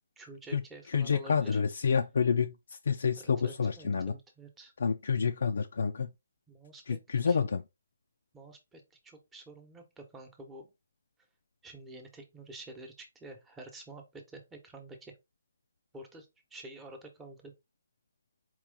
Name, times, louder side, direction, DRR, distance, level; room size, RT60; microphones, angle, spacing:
voice 1, 0.2-2.0 3.2-4.7 6.5-7.0 7.3-7.4 8.3-10.7 11.6-15.1 15.9-17.5, right 2 dB, 10° right, 1.0 m, -49 dB
voice 2, 0.9-2.5 2.9-4.1 4.8-6.1 6.9-7.6, left 6 dB, 65° left, 0.4 m, -28 dB
4.4 x 3.0 x 3.7 m
hypercardioid pair, 150°, 0 cm